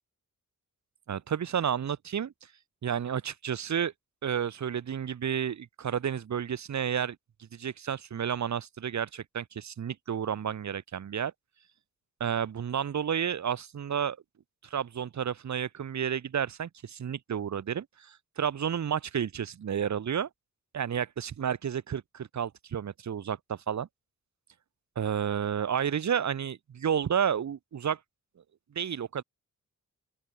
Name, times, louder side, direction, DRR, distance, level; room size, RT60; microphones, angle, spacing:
voice 1, 1.1-2.3 2.8-3.9 4.2-7.2 7.5-11.3 12.2-14.2 14.6-20.3 20.7-23.9 24.9-28.0 28.7-29.2, right 8 dB, 60° right, 1.4 m, -31 dB
open air
wide cardioid pair, 155°, 32 cm